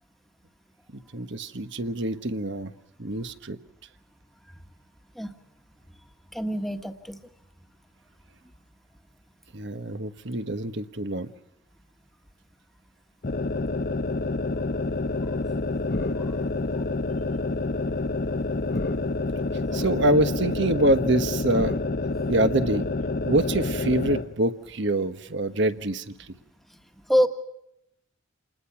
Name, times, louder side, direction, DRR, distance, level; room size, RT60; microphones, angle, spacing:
voice 1, 0.9-2.7 3.0-3.6 9.5-11.3 19.7-21.8 22.3-22.8 23.2-26.1, right 1 dB, 60° right, 10 dB, 1.3 m, -25 dB
voice 2, 6.3-7.2 19.7-19.8 27.1-27.3, equal, ahead, 5 dB, 1.5 m, -25 dB
sound 1, 13.2-24.3, left 3 dB, 45° left, 0.8 m, -28 dB
28.5 x 20.5 x 6.0 m, 0.81 s
head